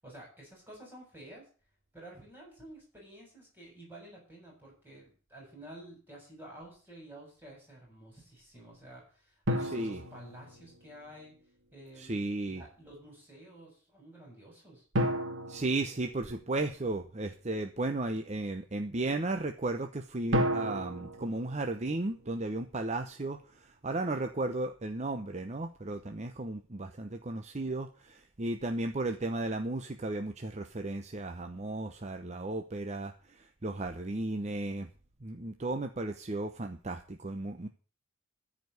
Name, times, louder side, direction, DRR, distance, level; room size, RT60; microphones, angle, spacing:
voice 1, 0.0-1.5 1.9-11.3 11.7-14.9, right 1 dB, 10° right, -2 dB, 7.3 m, -51 dB
sound 1, 9.5-11.1 14.9-16.8 20.3-22.6, equal, 60° right, 2.4 m, -33 dB
voice 2, 12.0-12.6 15.5-34.9 35.2-37.7, right 2 dB, 35° right, 6 dB, 0.8 m, -35 dB
14.0 x 5.1 x 9.3 m, 0.39 s
head